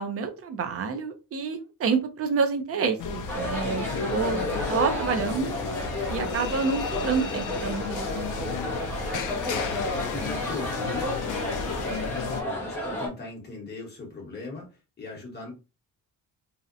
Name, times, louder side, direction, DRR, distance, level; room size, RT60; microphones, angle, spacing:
voice 1, 0.0-5.5 6.1-8.1 8.4-8.8, right 5 dB, 45° right, 7 dB, 0.5 m, -28 dB
sound 1, 3.0-12.4, left 5 dB, 60° left, 0.4 m, -33 dB
sound 2, 3.3-13.1, left 1 dB, 5° left, 0.6 m, -32 dB
voice 2, 9.7-15.5, left 3 dB, 30° left, -2 dB, 1.0 m, -39 dB
2.7 x 2.0 x 2.4 m, 0.30 s
wide cardioid pair, 175°, 35 cm